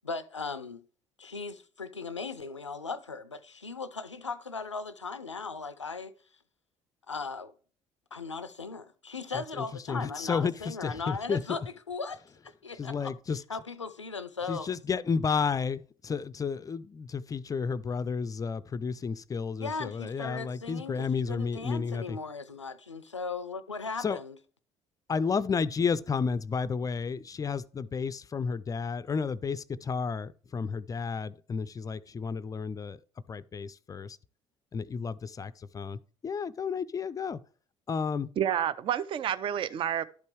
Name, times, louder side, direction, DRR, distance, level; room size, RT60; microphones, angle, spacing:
voice 1, 0.0-0.8 1.2-6.1 7.1-7.5 8.1-13.1 13.5-14.8 19.6-24.4, left 4 dB, 90° left, 0.4 m, -38 dB
voice 2, 9.3-11.4 12.8-13.4 14.5-22.2 24.0-24.2 25.1-33.0 33.3-34.2 34.7-37.4 37.9-38.3, left 5 dB, 25° left, 0.4 m, -32 dB
voice 3, 38.4-40.1, right 9 dB, 35° right, 0.4 m, -29 dB
11.5 x 5.3 x 3.2 m
figure-of-eight pair, 50°, 15 cm